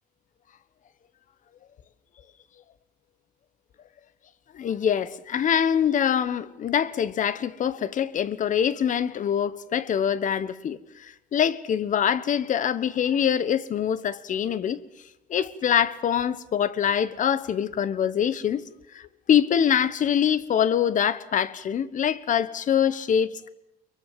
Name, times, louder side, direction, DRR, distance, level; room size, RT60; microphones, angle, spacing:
voice 1, 4.5-14.8 15.3-18.6 18.9-23.5, left 8 dB, 50° left, 1.3 m, -24 dB
23.5 x 22.5 x 7.7 m
cardioid pair, 110°, 17 cm